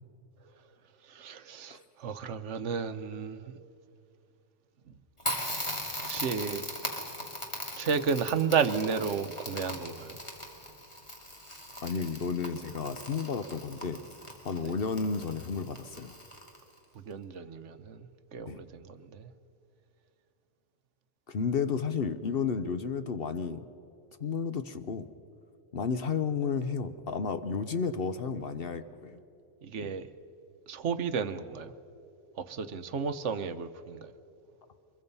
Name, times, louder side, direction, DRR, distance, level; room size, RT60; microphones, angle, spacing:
voice 1, 1.1-3.5 6.0-6.7 7.8-10.2 14.6-14.7 16.9-19.3 29.6-30.1 30.7-31.7 32.4-34.1, right 6 dB, 70° right, 1.1 m, -32 dB
Crackle, 5.2-16.8, equal, 25° left, 2.4 m, -39 dB
voice 2, 11.8-14.0 14.4-16.1 18.5-18.6 21.3-23.6 24.2-25.1 25.7-29.2 29.8-29.9, left 5 dB, 55° left, 0.9 m, -32 dB
23.5 x 22.0 x 5.5 m
omnidirectional pair, 1.3 m